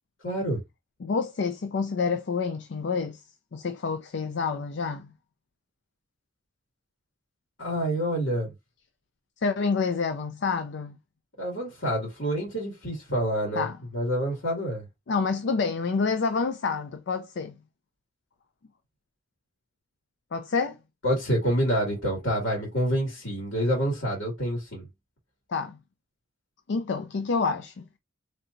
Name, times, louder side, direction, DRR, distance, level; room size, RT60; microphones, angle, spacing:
voice 1, 0.2-0.6 7.6-8.5 11.4-13.7 13.9-14.9 21.0-24.9, equal, 80° left, 2.1 m, -27 dB
voice 2, 1.0-3.2 3.5-5.1 9.4-11.0 13.5-13.8 15.1-17.5 20.3-20.8 25.5-25.8 26.7-27.9, left 4 dB, 60° left, 0.4 m, -28 dB
3.9 x 3.3 x 2.5 m
head